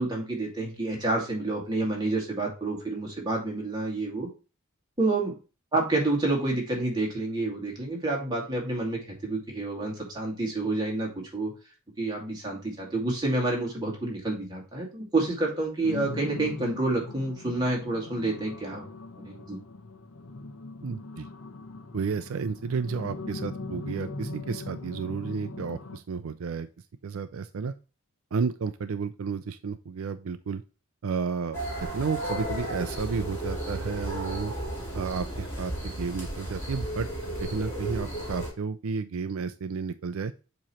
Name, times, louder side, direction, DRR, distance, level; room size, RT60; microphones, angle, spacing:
voice 1, 0.0-4.3 5.0-5.3 5.7-11.5 12.0-18.9 19.2-19.6, right 2 dB, 20° right, -2 dB, 2.2 m, -29 dB
sound 1, 15.8-26.0, left 2 dB, 80° left, 0.9 m, -40 dB
voice 2, 20.8-21.3 21.9-26.7 27.0-27.7 28.3-30.6 31.0-31.6 31.9-34.5 34.9-37.1 37.4-40.3, right 5 dB, 75° right, 11 dB, 0.4 m, -32 dB
sound 2, 31.5-38.5, right 1 dB, 10° left, 2.5 m, -34 dB
7.4 x 3.1 x 4.2 m, 0.32 s
head